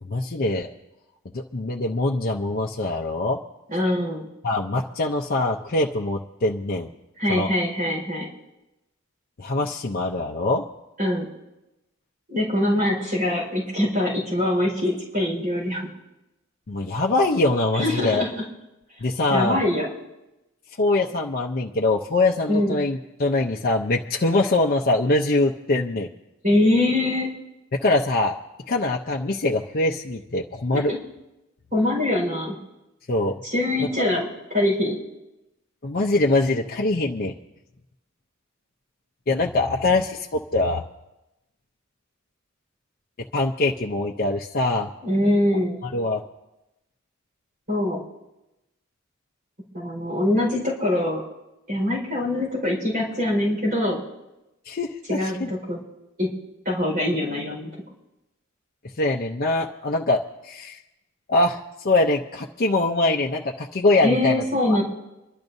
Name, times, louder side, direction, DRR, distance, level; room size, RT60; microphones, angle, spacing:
voice 1, 0.0-0.7 1.3-3.4 4.4-6.9 7.3-7.5 9.4-10.7 16.7-18.2 19.0-19.6 20.8-26.1 27.8-28.4 28.7-30.9 33.1-33.4 33.8-33.9 35.8-37.3 39.3-40.8 43.3-44.9 45.5-45.6 45.9-46.2 54.7-55.5 59.0-60.8 61.3-64.4, left 2 dB, 45° left, 0 dB, 0.6 m, -23 dB
voice 2, 3.7-4.2 7.2-8.3 11.0-11.2 12.3-15.8 17.7-18.3 19.3-19.9 22.5-22.7 26.4-27.3 30.7-31.0 31.7-32.5 33.4-35.0 45.0-45.8 47.7-48.0 49.7-51.2 51.7-54.0 55.1-55.8 56.2-56.3 56.6-57.7 64.0-64.8, left 1 dB, 45° right, -3 dB, 4.7 m, -23 dB
27.0 x 12.0 x 2.7 m, 0.96 s
head